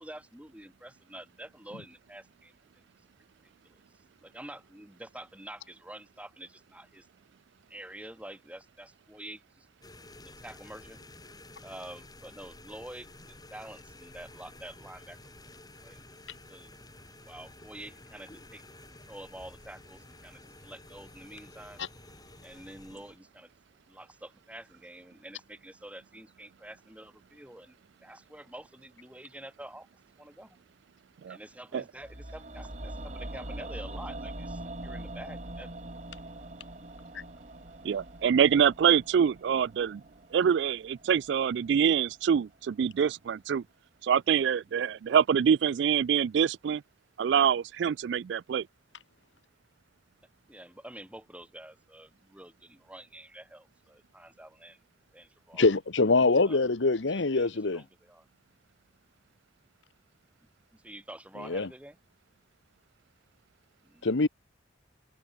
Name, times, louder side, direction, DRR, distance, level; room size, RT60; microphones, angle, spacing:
voice 1, 0.0-2.9 3.6-3.8 4.2-7.1 7.7-9.7 10.1-11.0 11.6-15.5 15.8-16.1 16.5-16.8 17.2-18.6 19.1-21.8 22.4-23.5 23.9-29.9 30.2-30.6 31.3-35.7 44.7-44.8 50.5-54.8 55.1-55.7 56.4-58.3 60.7-62.0, right 1 dB, 5° right, 3.8 m, -48 dB
sound 1, 9.8-23.2, left 2 dB, 20° left, 8.0 m, -52 dB
sound 2, 32.0-42.1 42.4-42.5, right 1 dB, 40° right, 4.9 m, -43 dB
voice 2, 37.8-40.0 40.3-43.6 44.0-46.8 47.2-48.7, right 8 dB, 65° right, 0.3 m, -25 dB
voice 3, 55.6-57.8 61.5-61.7 64.1-64.3, left 3 dB, 75° left, 1.1 m, -24 dB
head